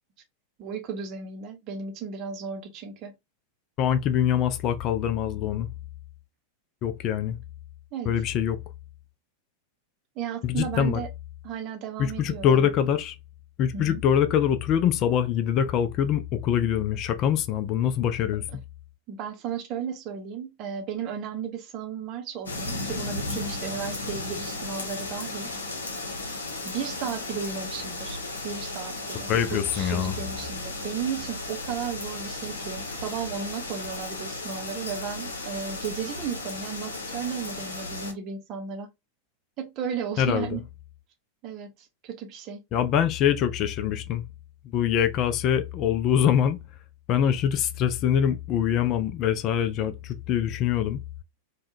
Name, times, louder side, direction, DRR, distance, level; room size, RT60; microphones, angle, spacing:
voice 1, 0.6-3.1 7.9-8.1 10.2-11.1 11.4-12.7 13.7-14.0 19.1-25.5 26.6-38.9 39.6-40.6 41.4-42.6, right 7 dB, 40° right, 0.7 m, -34 dB
voice 2, 3.8-5.7 6.8-7.4 8.1-8.6 10.4-11.0 12.0-13.2 13.6-18.4 29.3-30.2 40.2-40.6 42.7-44.2 44.6-46.6 47.1-51.0, left 9 dB, 35° left, 0.4 m, -24 dB
sound 1, 22.5-38.1, left 2 dB, 75° left, 0.7 m, -35 dB
3.5 x 2.2 x 2.6 m
figure-of-eight pair, 90°, 0 cm